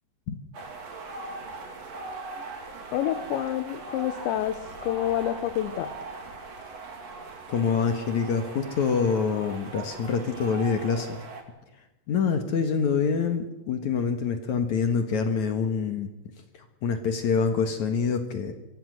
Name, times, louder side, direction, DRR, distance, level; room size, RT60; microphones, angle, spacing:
sound 1, 0.5-11.4, right 3 dB, 40° right, 3.4 m, -40 dB
voice 1, 2.9-5.9, left 12 dB, 85° left, 10 dB, 3.3 m, -28 dB
voice 2, 7.5-11.2 12.1-16.1 16.5-18.5, left 6 dB, 60° left, 7 dB, 2.2 m, -26 dB
25.0 x 23.5 x 6.5 m, 0.98 s
omnidirectional pair, 5.1 m